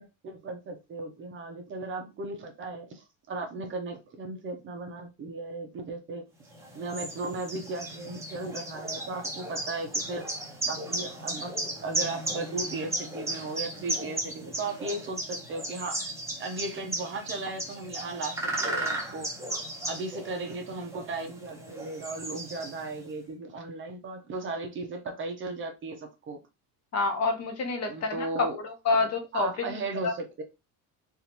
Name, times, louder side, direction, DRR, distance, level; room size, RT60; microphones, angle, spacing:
voice 1, 0.0-6.3 6.7-10.3 10.7-16.1 16.4-19.3 19.9-26.4 27.9-28.6 28.9-30.4, right 3 dB, 35° right, 4 dB, 0.7 m, -36 dB
sound 1, 6.5-23.1, right 1 dB, 10° right, 0.9 m, -35 dB
voice 2, 26.9-29.5 30.0-30.1, left 3 dB, 45° left, 4 dB, 1.0 m, -28 dB
3.5 x 2.6 x 2.9 m, 0.25 s
cardioid pair, 150°, 36 cm